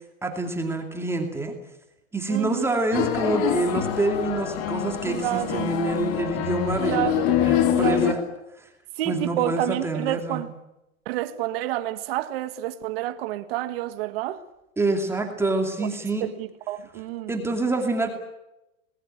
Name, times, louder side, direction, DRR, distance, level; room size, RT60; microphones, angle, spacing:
voice 1, 0.2-1.5 2.1-8.2 9.1-10.4 14.8-16.2 17.3-18.1, right 2 dB, 5° right, 2.5 m, -26 dB
voice 2, 2.3-2.8 5.0-5.7 6.8-7.3 7.7-8.2 9.0-10.5 11.1-14.4 15.8-15.9 16.2-17.4, right 14 dB, 45° right, 1.8 m, -29 dB
sound 1, 2.9-8.1, left 11 dB, 40° left, 2.7 m, -25 dB
27.5 x 20.5 x 8.8 m
hypercardioid pair, 155°, 40 cm